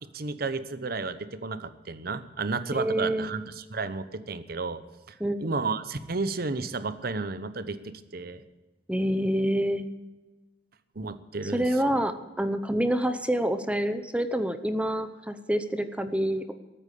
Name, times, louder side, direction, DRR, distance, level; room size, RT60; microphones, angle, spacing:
voice 1, 0.0-4.8 5.1-8.4 10.9-12.1, right 3 dB, 55° right, 13 dB, 0.9 m, -33 dB
voice 2, 2.7-3.3 5.2-5.4 8.9-9.9 11.5-16.5, right 1 dB, 5° right, 10 dB, 0.8 m, -27 dB
14.0 x 8.9 x 8.4 m, 1.2 s
head